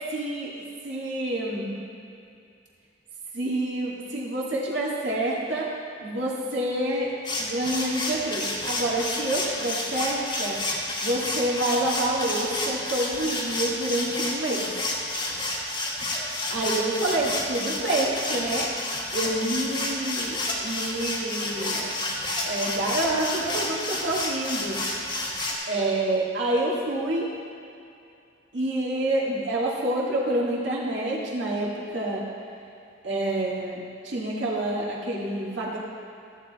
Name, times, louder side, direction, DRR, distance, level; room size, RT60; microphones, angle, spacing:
voice 1, 0.1-0.5 0.8-1.7 3.3-5.7 6.0-7.1 7.4-10.6 11.0-14.7 16.5-18.7 19.1-21.9 22.4-24.8 25.7-27.3 28.5-32.2 33.0-35.8, right 1 dB, 70° right, -5 dB, 1.9 m, -27 dB
sound 1, 7.2-25.5, left 2 dB, 25° left, 1.3 m, -30 dB
14.0 x 7.9 x 4.1 m, 2.5 s
head